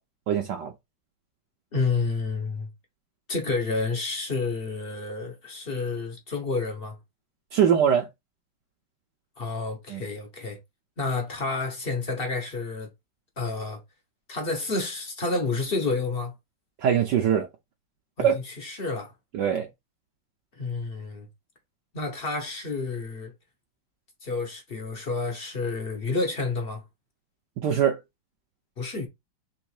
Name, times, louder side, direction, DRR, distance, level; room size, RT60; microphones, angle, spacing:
voice 1, 0.3-0.7 7.5-8.1 9.9-10.0 16.8-17.5 18.2-18.4 19.3-19.7 27.6-28.0, right 8 dB, 70° right, 1.2 m, -22 dB
voice 2, 1.7-2.7 3.3-7.0 9.4-10.6 11.0-12.9 13.4-13.8 14.3-16.3 18.2-19.1 20.6-21.3 21.9-23.3 24.2-26.8 28.8-29.1, left 3 dB, 45° left, 0.8 m, -29 dB
3.5 x 3.1 x 4.7 m
omnidirectional pair, 2.2 m